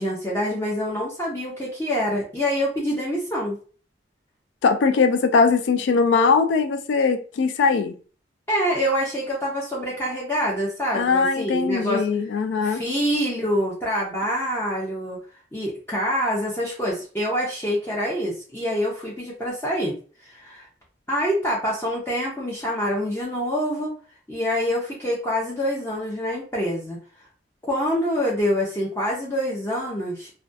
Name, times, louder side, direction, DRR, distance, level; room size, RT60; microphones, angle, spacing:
voice 1, 0.0-3.6 8.5-12.0 12.6-15.2 15.5-20.0 20.2-20.7 21.1-23.9 24.3-27.0 27.7-30.3, equal, 15° left, 0.5 m, -26 dB
voice 2, 4.6-8.0 10.9-12.8, left 4 dB, 80° left, 0.3 m, -20 dB
2.3 x 2.2 x 2.6 m
head